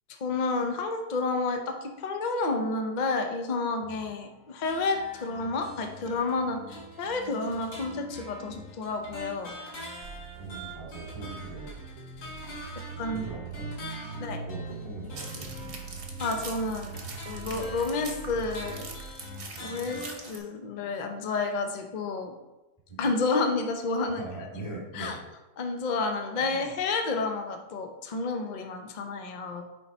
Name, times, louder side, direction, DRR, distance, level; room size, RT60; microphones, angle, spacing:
voice 1, 0.2-9.5 13.0-13.2 14.2-14.4 16.2-17.0 17.3-18.8 19.6-22.3 23.0-24.2 24.9-25.2 25.6-29.6, left 3 dB, 45° left, 5 dB, 0.6 m, -30 dB
sound 1, 4.3-20.3, left 1 dB, 80° left, 2.1 m, -44 dB
sound 2, 10.0-19.1, right 5 dB, 85° right, 1.2 m, -42 dB
voice 2, 10.4-11.7 13.0-13.7 14.1-15.5 19.5-20.0 22.9-23.0 24.2-25.2 26.3-26.6, right 2 dB, 20° left, -6 dB, 2.4 m, -41 dB
sound 3, 15.1-20.4, right 4 dB, 45° right, 1.0 m, -44 dB
6.5 x 4.6 x 4.3 m, 1.0 s
omnidirectional pair, 1.6 m